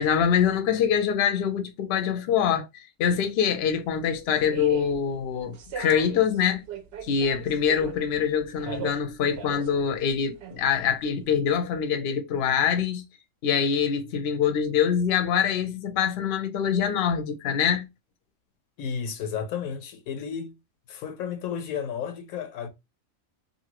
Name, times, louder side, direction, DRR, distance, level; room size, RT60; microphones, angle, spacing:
voice 1, 0.0-6.6 7.0-13.0 13.4-17.8, left 7 dB, 60° left, 0.7 m, -24 dB
sound 1, 3.6-11.3, right 7 dB, 65° right, 0.6 m, -39 dB
voice 2, 18.8-20.5 20.9-22.7, left 7 dB, 85° left, 1.1 m, -32 dB
2.7 x 2.6 x 2.9 m
omnidirectional pair, 1.4 m